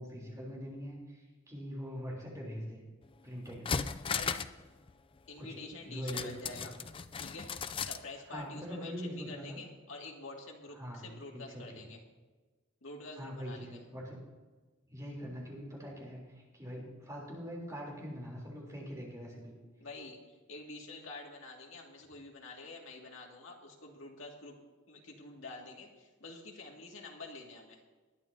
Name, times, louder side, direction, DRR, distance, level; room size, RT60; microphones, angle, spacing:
voice 1, 0.0-2.8 3.2-3.7 5.4-6.7 8.3-9.6 10.7-11.0 11.3-11.8 13.2-14.2 14.9-19.6, equal, 15° right, -3 dB, 3.4 m, -43 dB
sound 1, 3.0-3.1 3.5-4.6 4.9-5.0 6.1-8.0 8.4-8.5, left 6 dB, 25° left, 0.4 m, -36 dB
voice 2, 4.1-4.4 5.3-6.8 7.2-12.0 12.8-13.8 19.8-24.6 24.9-27.8, left 3 dB, 65° left, 0 dB, 2.3 m, -48 dB
20.5 x 11.0 x 2.8 m, 1.3 s
head